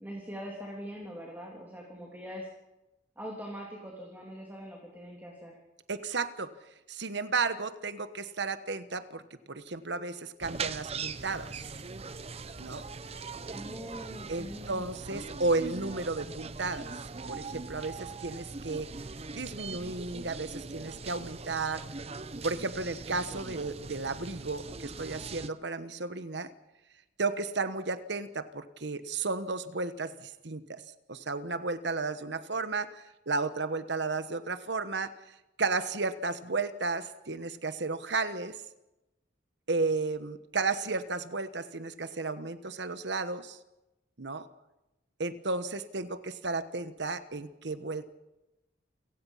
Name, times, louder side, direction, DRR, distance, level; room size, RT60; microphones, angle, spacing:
voice 1, 0.0-2.5 3.2-5.6 13.5-15.0, equal, 10° right, -1 dB, 3.3 m, -42 dB
voice 2, 5.9-6.5 6.9-9.2 9.5-11.6 12.6-12.9 14.3-16.9 17.3-18.9 19.3-21.8 22.4-26.5 27.2-30.8 31.1-35.1 35.6-38.6 39.7-43.6 44.2-44.5 45.2-48.1, right 3 dB, 65° right, 12 dB, 1.2 m, -33 dB
sound 1, 10.4-25.5, right 4 dB, 35° right, 0.8 m, -41 dB
29.0 x 17.0 x 5.7 m, 0.97 s
head